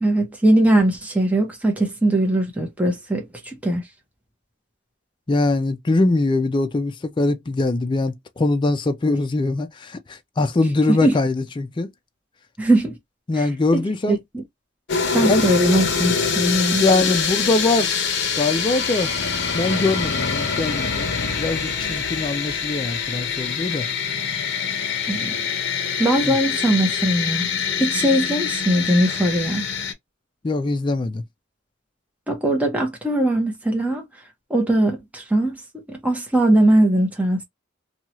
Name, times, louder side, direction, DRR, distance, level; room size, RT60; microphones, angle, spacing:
voice 1, 0.0-3.8 10.9-11.2 12.6-13.0 13.4-13.5 13.7-14.4 15.1-16.8 25.1-25.3 26.0-27.5 27.8-29.6 32.3-34.0 34.5-35.6 35.9-37.4, right 1 dB, 10° right, 0.7 m, -20 dB
voice 2, 5.3-11.9 13.3-14.2 15.2-15.4 16.8-19.1 19.5-21.1 21.4-23.9 26.2-26.4 30.4-31.2, left 2 dB, 25° left, 0.3 m, -22 dB
sound 1, 14.9-29.9, left 6 dB, 60° left, 0.7 m, -24 dB
2.7 x 2.3 x 2.9 m
head